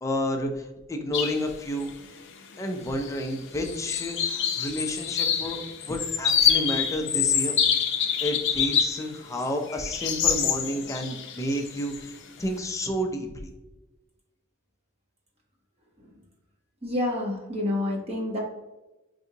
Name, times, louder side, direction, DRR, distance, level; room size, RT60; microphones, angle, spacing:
voice 1, 0.0-1.9 2.6-7.6 8.2-13.5, equal, 15° left, 3 dB, 0.5 m, -31 dB
sound 1, 1.1-1.4 1.8-1.9 2.9-3.3 3.6-9.0 9.4-12.1, left 8 dB, 60° left, 0.6 m, -26 dB
voice 2, 16.8-18.4, left 1 dB, 30° right, -2 dB, 1.0 m, -28 dB
4.7 x 2.7 x 2.7 m, 1.1 s
head